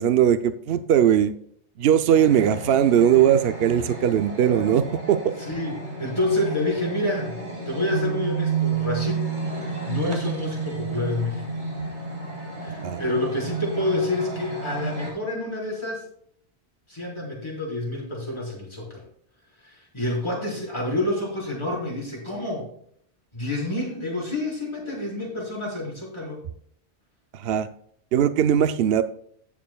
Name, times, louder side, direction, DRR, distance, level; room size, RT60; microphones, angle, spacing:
voice 1, 0.0-1.3 1.8-5.3 12.8-13.0 27.3-27.7 28.1-29.0, right 9 dB, 65° right, 11 dB, 0.8 m, -19 dB
sound 1, 2.1-15.1, right 5 dB, 45° right, 2.4 m, -31 dB
voice 2, 5.4-11.4 12.6-16.0 16.9-19.0 19.6-22.7 23.3-26.4, left 2 dB, 25° left, -5 dB, 4.4 m, -28 dB
18.5 x 7.5 x 2.3 m, 0.64 s
omnidirectional pair, 1.1 m